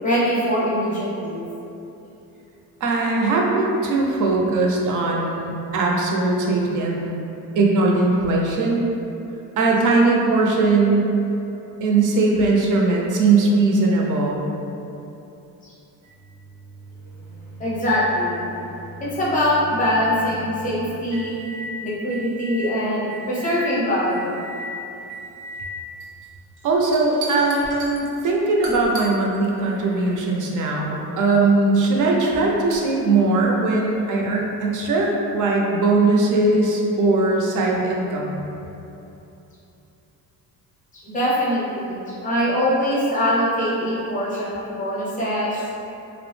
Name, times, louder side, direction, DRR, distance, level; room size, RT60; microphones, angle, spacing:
voice 1, 0.0-1.4 15.6-15.7 17.6-18.4 19.0-21.4 21.8-24.3 40.9-45.7, equal, 20° left, -7 dB, 0.5 m, -23 dB
voice 2, 2.8-7.1 7.6-8.8 9.6-11.1 11.8-14.4 26.6-38.4, right 3 dB, 55° right, -1 dB, 0.4 m, -20 dB
sound 1, 16.0-21.7 22.1-22.7 23.1-23.7 24.1-24.7 25.1-25.7 26.0-26.3 26.6-28.0 28.6-29.1 29.5-30.4 31.2-31.3 32.7-32.8, right 2 dB, 90° right, 0.7 m, -37 dB
2.6 x 2.0 x 3.0 m, 2.9 s
cardioid pair, 150°, 37 cm